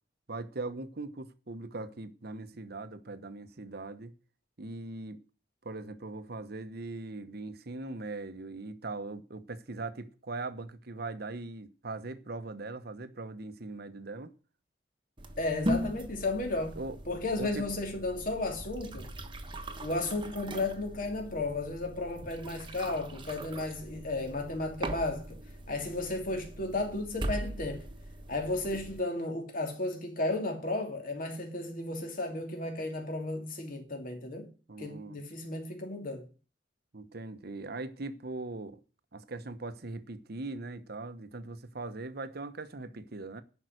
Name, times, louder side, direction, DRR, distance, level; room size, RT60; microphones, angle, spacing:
voice 1, 0.3-4.1 4.6-5.2 5.6-14.3 16.8-17.0 17.4-17.7 34.7-35.2 36.9-38.8 39.1-43.4, right 2 dB, 60° right, 1.0 m, -40 dB
sound 1, 15.2-29.0, equal, 25° right, 1.3 m, -40 dB
voice 2, 15.4-16.8 17.1-19.1 19.8-25.4 25.7-27.8 28.3-34.5 34.8-36.3, left 2 dB, 50° left, 2.9 m, -34 dB
10.5 x 5.7 x 7.9 m
head